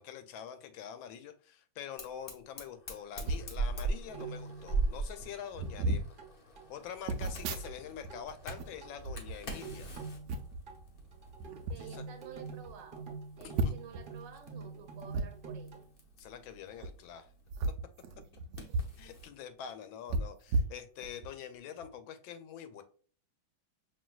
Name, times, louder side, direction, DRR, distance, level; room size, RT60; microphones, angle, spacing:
voice 1, 0.0-6.0 6.7-9.9 11.8-12.0 13.4-13.7 16.2-17.3 19.0-22.8, left 8 dB, 80° left, 1.4 m, -45 dB
Fire, 2.0-19.3, right 3 dB, 55° left, 0.6 m, -42 dB
sound 1, 3.2-3.5 4.4-4.5 4.7-4.9 5.5-6.1 7.1-8.1 8.4-9.8 10.3-10.6 11.4-11.8 12.3-12.4 12.7-12.8 13.5-14.0 15.1-15.3 16.7-16.9 17.5-19.0 19.3-19.4 20.1-21.3 21.8-21.9, right 2 dB, 90° right, 0.8 m, -34 dB
sound 2, 4.1-5.3 5.7-5.8 6.2-6.3 6.6-6.9 7.3-7.4 7.6-7.7 8.0-8.5 8.8-8.9 9.3-10.4 10.7-10.8 11.1-15.9, right 4 dB, 40° right, 0.8 m, -46 dB
voice 2, 11.5-13.1 13.4-15.8 18.3-18.9, right 8 dB, 70° right, 1.2 m, -51 dB
5.3 x 2.8 x 2.3 m
omnidirectional pair, 2.2 m